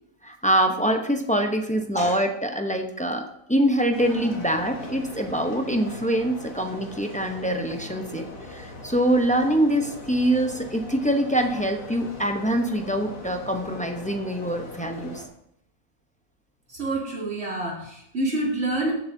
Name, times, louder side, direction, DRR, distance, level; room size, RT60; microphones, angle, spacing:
voice 1, 0.2-15.2, right 1 dB, 10° left, 4 dB, 0.6 m, -24 dB
sound 1, 3.9-15.3, left 2 dB, 85° left, 2.0 m, -40 dB
voice 2, 16.7-18.9, right 2 dB, 60° right, -4 dB, 3.1 m, -27 dB
15.5 x 7.2 x 2.7 m, 0.78 s
omnidirectional pair, 1.4 m